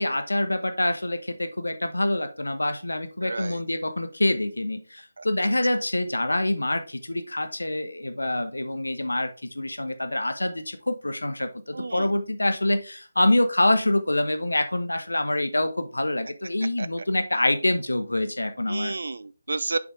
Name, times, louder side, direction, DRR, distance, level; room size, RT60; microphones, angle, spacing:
voice 1, 0.0-18.9, left 1 dB, 75° left, 1.1 m, -26 dB
voice 2, 3.2-3.6 5.2-5.3 11.7-12.1 16.8-16.9 18.7-19.8, right 3 dB, 60° right, 0.5 m, -31 dB
6.7 x 5.2 x 3.3 m
figure-of-eight pair, 155°, 0 cm